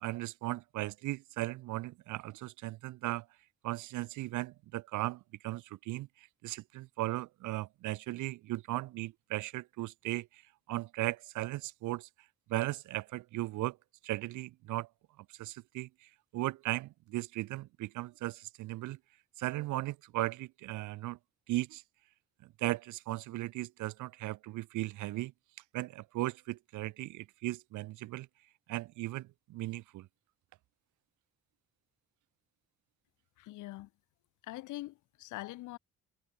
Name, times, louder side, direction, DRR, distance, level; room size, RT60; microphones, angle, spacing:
voice 1, 0.0-3.3 3.6-6.1 6.4-10.3 10.7-12.1 12.5-13.8 14.0-14.9 15.4-15.9 16.3-19.0 19.4-21.2 21.5-21.8 22.6-25.3 25.7-28.3 28.7-30.1, right 17 dB, 75° right, 0.6 m, -37 dB
voice 2, 33.4-33.9 34.5-35.8, left 17 dB, 80° left, 0.7 m, -43 dB
cardioid pair, 90°, 30 cm